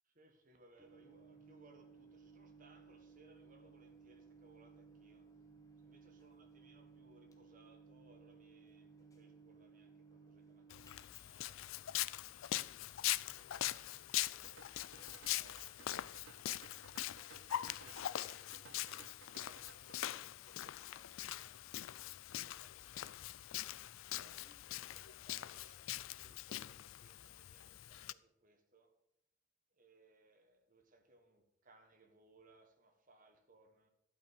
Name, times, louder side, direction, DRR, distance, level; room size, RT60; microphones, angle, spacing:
voice 1, 0.0-5.3 5.8-12.5 13.3-16.3 17.2-21.6 22.3-23.2 24.1-29.0 29.7-33.9, right 2 dB, 40° right, 1.5 m, -67 dB
Microwave oven, 0.8-14.3, right 4 dB, 15° left, 1.2 m, -61 dB
Walk footsteps, 10.7-28.1, left 14 dB, 75° left, 0.4 m, -42 dB
sound 1, 14.2-20.2, right 5 dB, 60° right, 0.6 m, -60 dB
12.0 x 5.7 x 7.2 m
head